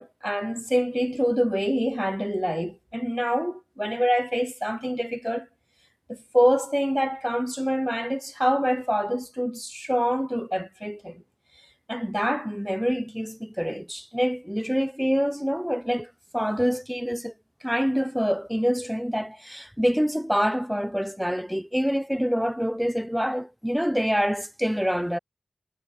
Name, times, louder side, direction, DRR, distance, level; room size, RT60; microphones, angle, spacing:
voice 1, 0.0-5.5 6.1-11.2 11.9-17.3 17.6-25.2, equal, ahead, 0.7 m, -26 dB
wide cardioid pair, 120°, 0 cm